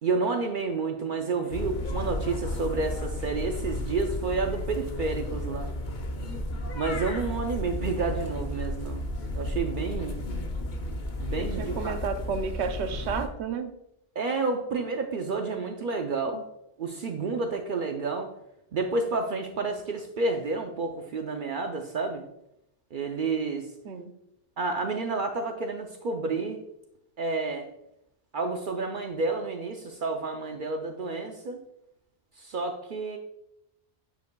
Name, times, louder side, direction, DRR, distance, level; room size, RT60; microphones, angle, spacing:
voice 1, 0.0-5.7 6.7-9.1 9.3-10.2 11.2-12.0 14.2-16.4 16.8-18.3 18.7-22.3 22.9-23.7 24.6-26.6 27.2-27.7 28.3-31.6 32.4-33.2, right 4 dB, 60° right, 4 dB, 0.7 m, -30 dB
sound 1, 1.5-13.3, left 1 dB, 50° left, 0.8 m, -33 dB
voice 2, 11.4-13.7 23.8-24.1, right 5 dB, 90° right, 8 dB, 0.9 m, -32 dB
9.3 x 5.0 x 2.2 m, 0.84 s
omnidirectional pair, 1.1 m